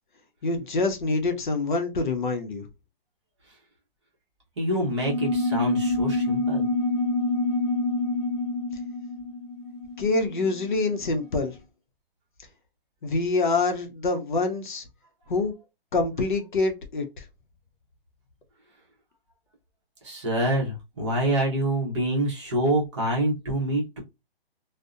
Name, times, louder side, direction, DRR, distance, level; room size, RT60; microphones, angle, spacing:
voice 1, 0.4-2.7 10.0-11.6 13.0-14.8 15.3-15.5 15.9-17.2, left 3 dB, 55° left, 0.6 m, -26 dB
voice 2, 4.6-6.7 20.0-24.0, right 1 dB, 30° right, 0.8 m, -26 dB
sound 1, 4.9-10.9, left 2 dB, 10° left, 0.7 m, -27 dB
2.6 x 2.0 x 2.3 m
hypercardioid pair, 170°, 30 cm